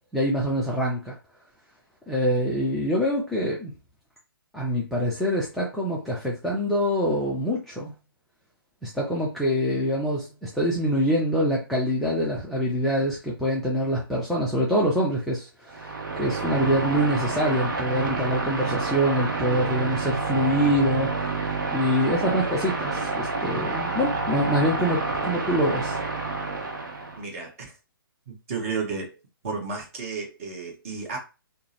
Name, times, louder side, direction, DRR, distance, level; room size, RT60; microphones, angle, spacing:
voice 1, 0.1-1.2 2.1-3.7 4.5-7.9 8.8-21.1 21.7-26.0, equal, ahead, 0.3 m, -25 dB
sound 1, 15.7-27.2, right 3 dB, 60° right, 0.8 m, -29 dB
voice 2, 27.2-27.7 28.3-29.1 29.4-31.2, right 4 dB, 35° right, 1.1 m, -32 dB
3.6 x 2.0 x 2.8 m
figure-of-eight pair, 130°, 12 cm